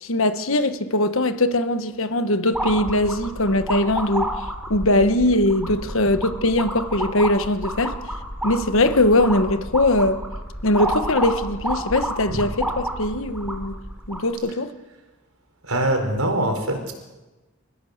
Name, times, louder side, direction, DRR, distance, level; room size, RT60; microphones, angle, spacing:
voice 1, 0.0-4.3 4.7-7.9 8.4-10.2 10.6-13.7 14.1-14.7, left 1 dB, 65° left, 1.3 m, -21 dB
sound 1, 2.5-14.3, right 1 dB, 5° right, 3.2 m, -30 dB
voice 2, 15.6-16.9, right 1 dB, 75° right, 4.4 m, -23 dB
30.0 x 15.0 x 6.7 m
head